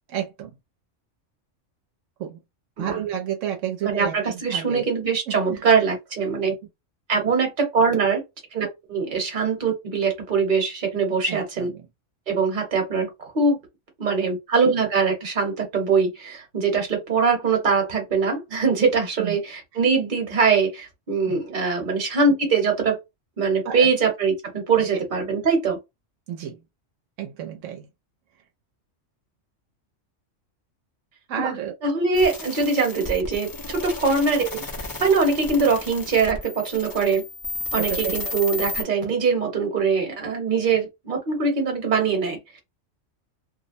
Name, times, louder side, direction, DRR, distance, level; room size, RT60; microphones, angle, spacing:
voice 1, 0.1-0.5 2.2-2.4 2.8-4.9 5.3-5.6 11.3-11.9 19.2-19.4 21.3-21.4 23.6-23.9 24.8-24.9 26.3-26.6 27.2-27.9 31.3-31.7 37.8-38.3 38.6-38.7, right 10 dB, 80° right, 0.9 m, -31 dB
voice 2, 3.8-6.5 7.1-8.2 8.5-11.7 12.3-13.1 13.3-13.6 14.0-23.0 23.4-25.8 31.4-31.6 31.8-34.6 35.0-37.2 37.7-42.6, right 5 dB, 45° right, 1.0 m, -22 dB
sound 1, 32.1-38.8, left 3 dB, 25° left, 0.5 m, -33 dB
2.5 x 2.0 x 2.5 m
omnidirectional pair, 1.3 m